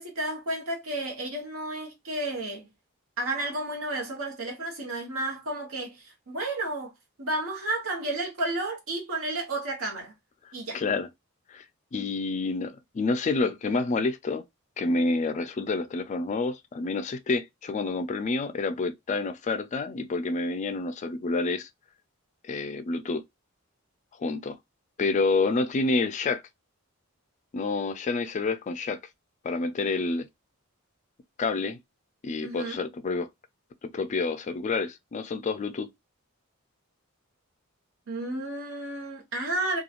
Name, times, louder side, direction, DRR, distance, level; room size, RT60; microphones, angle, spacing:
voice 1, 0.0-2.7 3.2-6.9 7.2-10.1 10.5-10.8 32.4-32.8 38.1-39.8, right 2 dB, 75° right, 1.0 m, -32 dB
voice 2, 10.7-11.1 11.5-11.6 11.9-14.4 14.8-21.7 22.4-23.2 24.2-24.6 25.0-26.4 27.5-29.0 29.4-30.3 31.4-31.8 32.2-33.3 33.8-35.9, left 3 dB, 35° left, 0.3 m, -28 dB
2.9 x 2.3 x 2.3 m
head